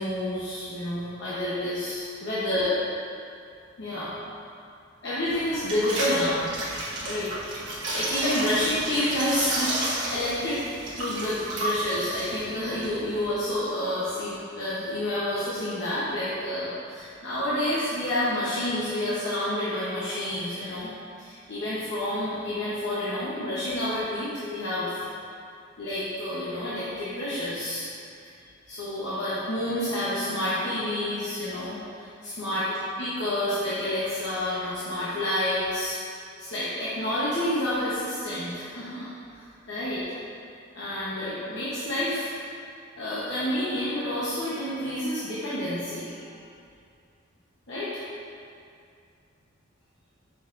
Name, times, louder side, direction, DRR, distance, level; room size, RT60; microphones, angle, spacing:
voice 1, 0.0-2.7 3.8-4.1 5.0-6.4 7.0-7.3 7.9-10.6 11.0-20.9 21.2-25.0 25.8-27.8 28.7-36.0 36.4-40.0 40.7-42.3 43.0-46.4 47.7-47.9, left 1 dB, 65° left, -10 dB, 1.0 m, -29 dB
sound 1, 5.2-13.3, right 1 dB, 65° right, 1.4 m, -32 dB
6.9 x 5.7 x 2.6 m, 2.4 s
head